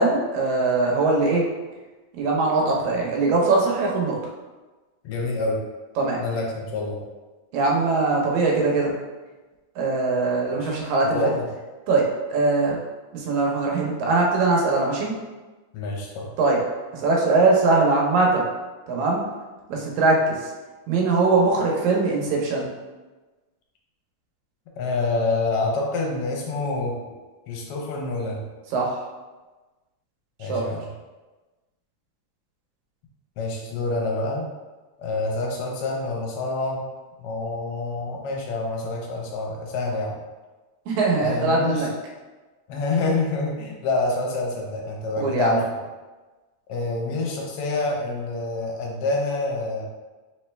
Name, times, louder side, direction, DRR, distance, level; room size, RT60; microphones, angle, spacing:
voice 1, 0.0-1.4 2.2-4.2 6.0-6.2 7.5-9.0 9.8-11.2 11.9-12.8 13.3-15.1 16.4-16.6 17.0-18.5 18.9-19.2 19.7-20.4 20.9-22.7 28.7-29.0 30.5-30.7 40.9-41.9 45.2-45.6, right 3 dB, 80° right, -1 dB, 2.2 m, -21 dB
voice 2, 5.0-5.6 6.2-7.0 10.6-10.8 11.1-11.5 15.7-16.3 24.8-26.9 27.5-28.4 30.4-30.9 33.4-34.4 35.0-36.8 37.2-40.2 41.2-41.9 42.7-45.6 46.7-49.9, left 3 dB, 75° left, -1 dB, 1.4 m, -27 dB
4.7 x 3.0 x 3.2 m, 1.2 s
omnidirectional pair, 3.4 m